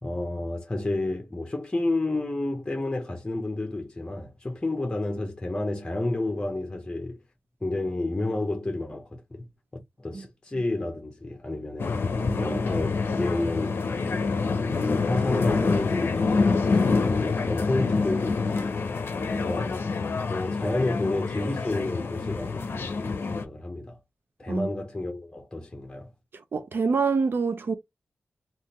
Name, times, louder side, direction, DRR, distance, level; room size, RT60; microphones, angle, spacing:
voice 1, 0.0-7.2 7.6-9.5 10.0-12.0 12.4-13.8 14.5-18.7 19.3-19.7 20.3-24.0 24.4-26.1, left 2 dB, 20° left, 0.9 m, -30 dB
sound 1, 11.8-23.4, left 4 dB, 70° left, 0.6 m, -26 dB
voice 2, 12.2-12.6 24.5-24.7 26.5-27.7, right 4 dB, 70° right, 0.5 m, -26 dB
3.6 x 2.5 x 2.9 m
wide cardioid pair, 110°, 4 cm